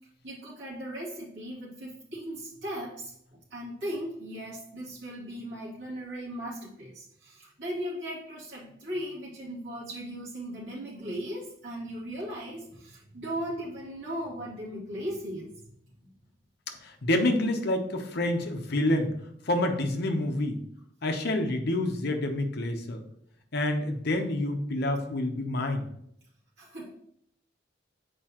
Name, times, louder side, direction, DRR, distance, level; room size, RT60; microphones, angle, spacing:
voice 1, 0.2-15.6 16.0-16.1 26.6-26.9, equal, 90° right, -8 dB, 2.4 m, -37 dB
voice 2, 17.0-19.1 19.5-20.6 21.0-23.0 23.5-25.8, left 1 dB, 60° left, 4 dB, 0.9 m, -27 dB
6.8 x 4.8 x 2.9 m, 0.72 s
head